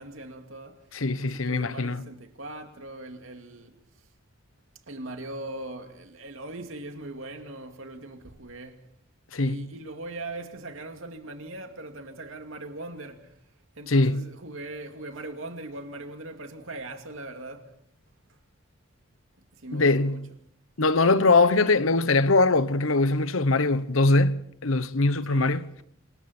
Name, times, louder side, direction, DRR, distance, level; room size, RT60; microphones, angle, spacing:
voice 1, 0.0-0.8 1.2-3.7 4.9-8.9 9.4-13.4 13.8-17.7 19.5-20.2 25.3-25.7, right 2 dB, 80° right, 2.6 m, -40 dB
voice 2, 0.9-2.0 9.3-9.7 13.9-14.3 19.7-20.3 20.8-25.6, left 3 dB, 90° left, 1.1 m, -22 dB
27.5 x 26.0 x 4.4 m
head